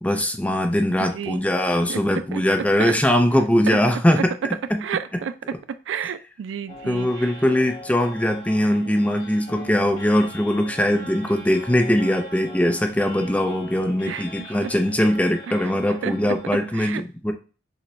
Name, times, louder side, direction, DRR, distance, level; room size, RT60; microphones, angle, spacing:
voice 1, 0.0-4.3 4.7-4.8 6.8-17.3, left 1 dB, 5° left, 0.4 m, -21 dB
voice 2, 1.0-1.4 1.9-2.0 2.3-2.4 2.8-2.9 3.7-3.8 4.2-4.3 4.8-5.3 5.9-7.3 14.1-14.7 15.5-15.7 16.0-16.3 16.7-17.0, right 7 dB, 85° right, 0.3 m, -31 dB
sound 1, 6.7-16.8, equal, 45° left, 1.3 m, -41 dB
6.5 x 2.2 x 3.0 m
head